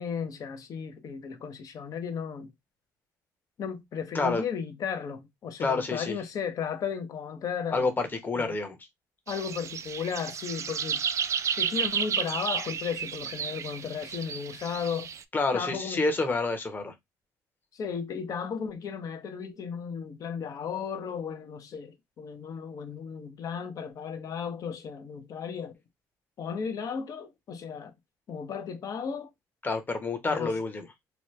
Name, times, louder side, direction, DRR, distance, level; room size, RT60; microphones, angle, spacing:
voice 1, 0.0-2.5 3.6-7.9 8.3-8.6 9.3-11.0 11.6-15.1 15.5-16.0 17.7-25.8 26.4-27.9 28.3-29.3 30.3-30.6, left 6 dB, 55° left, 0.7 m, -35 dB
voice 2, 5.6-6.2 7.7-8.7 15.3-16.9 29.6-30.8, left 3 dB, 25° left, 0.9 m, -28 dB
sound 1, 9.3-15.2, right 7 dB, 45° right, 0.4 m, -32 dB
3.0 x 2.2 x 3.1 m
supercardioid pair, 80°, 7 cm